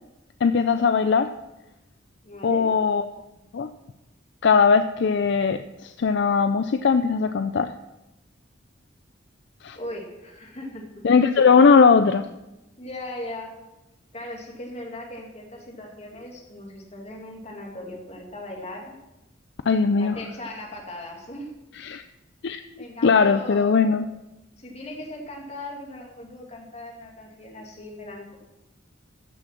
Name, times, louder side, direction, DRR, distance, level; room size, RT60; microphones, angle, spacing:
voice 1, 0.4-1.3 2.4-3.0 3.5-3.7 4.4-7.7 9.6-9.8 11.0-12.3 19.7-20.1 21.7-22.0 22.4-24.1, left 5 dB, 60° left, 9 dB, 0.4 m, -19 dB
voice 2, 2.2-2.7 9.8-11.1 12.8-13.6 14.1-18.9 20.0-21.5 22.8-24.0 24.6-28.4, left 1 dB, 35° left, 0 dB, 2.3 m, -38 dB
14.0 x 6.2 x 5.9 m, 0.97 s
head